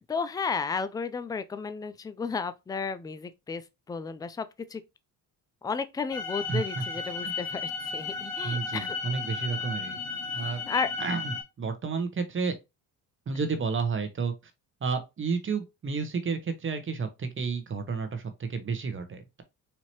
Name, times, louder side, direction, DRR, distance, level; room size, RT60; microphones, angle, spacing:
voice 1, 0.0-3.6 3.9-4.5 4.7-4.8 5.6-9.0 10.7-10.9, left 5 dB, 10° left, 0.3 m, -33 dB
sound 1, 6.1-11.4, left 4 dB, 75° left, 2.2 m, -34 dB
voice 2, 6.5-6.8 7.2-7.3 8.4-10.0 10.3-10.6 11.0-12.6 13.3-14.3 14.8-19.4, right 5 dB, 35° right, 0.9 m, -31 dB
4.3 x 2.8 x 3.0 m
cardioid pair, 90°, 37 cm